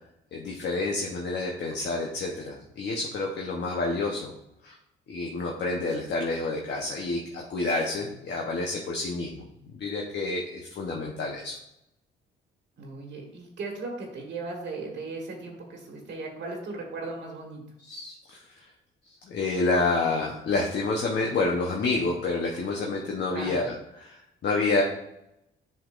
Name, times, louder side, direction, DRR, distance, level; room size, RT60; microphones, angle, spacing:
voice 1, 0.3-4.3 4.6-4.8 5.1-9.5 9.7-11.6 17.8-18.4 19.3-23.7 24.0-24.8, left 3 dB, 60° left, 0 dB, 1.0 m, -28 dB
voice 2, 12.8-17.6 23.3-23.7, right 3 dB, 65° right, 1 dB, 1.5 m, -37 dB
7.6 x 5.7 x 2.5 m, 0.82 s
cardioid pair, 90°, 20 cm